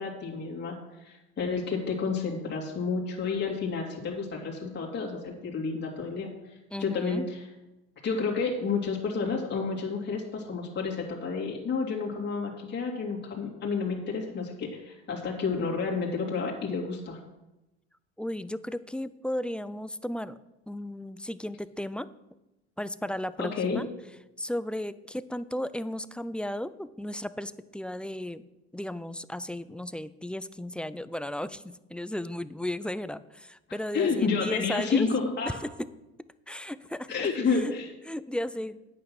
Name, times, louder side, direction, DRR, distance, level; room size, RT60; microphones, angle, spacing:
voice 1, 0.0-6.3 6.8-7.4 8.0-17.2 23.4-23.8 33.9-35.6 37.1-37.9, left 5 dB, 35° left, -2 dB, 2.8 m, -30 dB
voice 2, 6.7-7.3 18.2-20.4 20.7-22.1 22.8-23.9 24.4-28.4 28.7-35.1 35.4-35.9 36.5-37.7 38.1-38.8, left 1 dB, 5° left, 14 dB, 0.4 m, -35 dB
9.2 x 8.0 x 6.2 m, 0.97 s
supercardioid pair, 90°, 30 cm